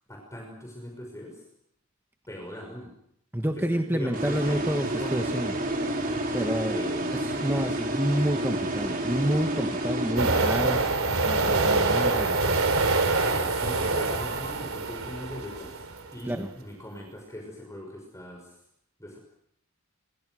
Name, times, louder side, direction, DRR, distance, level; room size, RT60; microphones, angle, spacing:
voice 1, 0.1-1.4 2.3-2.9 3.6-5.2 6.4-7.1 13.3-15.7 16.1-18.5 19.0-19.2, equal, 15° left, 1 dB, 5.8 m, -40 dB
voice 2, 3.3-5.6 6.3-10.8 11.2-12.6 16.3-16.5, equal, 10° right, 5 dB, 1.3 m, -29 dB
sound 1, 4.1-10.8, right 1 dB, 40° right, 4.7 m, -30 dB
sound 2, 10.2-15.9, right 3 dB, 65° right, 4.1 m, -25 dB
28.0 x 25.5 x 6.4 m, 0.74 s
head